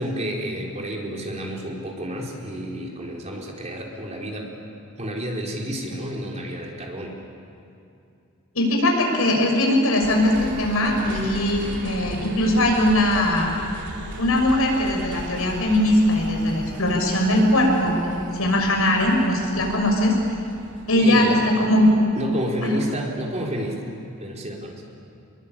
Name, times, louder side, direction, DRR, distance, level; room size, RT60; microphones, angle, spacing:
voice 1, 0.0-4.5 5.0-7.1 20.9-21.5 22.2-23.9 24.2-24.8, equal, 35° right, -1 dB, 4.2 m, -30 dB
voice 2, 8.5-13.5 14.2-20.2 20.9-21.9 22.6-22.7, left 1 dB, 85° left, 1 dB, 6.6 m, -20 dB
sound 1, 10.0-22.5 22.9-23.0, right 1 dB, 60° right, 3.6 m, -38 dB
27.0 x 22.0 x 8.9 m, 2.6 s
head